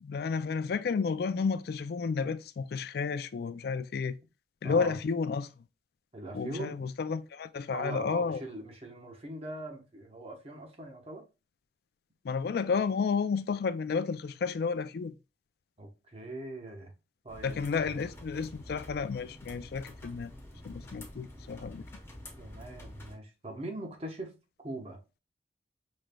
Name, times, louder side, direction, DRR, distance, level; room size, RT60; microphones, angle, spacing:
voice 1, 0.0-4.2 4.6-5.5 6.3-8.4 12.2-15.1 17.4-20.3 20.6-21.8, left 5 dB, 55° left, 0.3 m, -31 dB
voice 2, 4.6-5.0 6.1-6.8 7.7-11.2 15.8-16.9 17.2-18.1 22.4-24.3 24.6-25.0, right 2 dB, 30° right, 1.0 m, -41 dB
sound 1, 17.3-23.2, left 1 dB, 15° left, 0.9 m, -48 dB
5.1 x 3.1 x 2.2 m
head